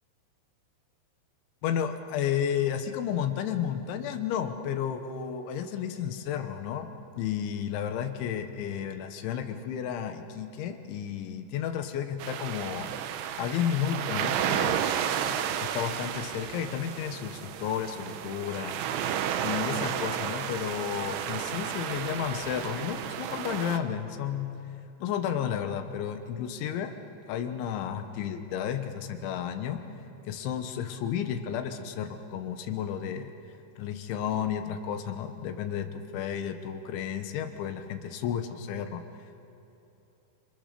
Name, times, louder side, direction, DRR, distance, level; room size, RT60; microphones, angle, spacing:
voice 1, 1.6-12.9 13.4-14.8 15.2-18.8 19.4-24.6 25.0-27.0 27.3-29.8 30.3-33.3 33.8-39.0, left 9 dB, 80° left, 7 dB, 3.6 m, -32 dB
sound 1, 12.2-23.8, right 9 dB, 80° right, 3.3 m, -32 dB
30.0 x 26.5 x 6.8 m, 3.0 s
omnidirectional pair, 5.5 m